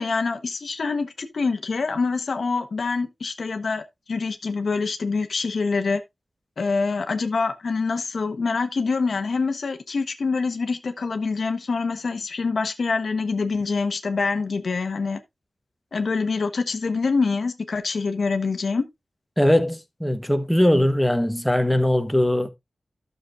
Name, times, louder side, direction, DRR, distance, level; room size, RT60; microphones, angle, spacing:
voice 1, 0.0-6.0 6.6-15.2 15.9-18.8, left 4 dB, 70° left, 1.0 m, -25 dB
voice 2, 19.4-22.5, left 1 dB, 5° left, 1.1 m, -20 dB
12.5 x 6.8 x 2.5 m
wide cardioid pair, 80°, 0 cm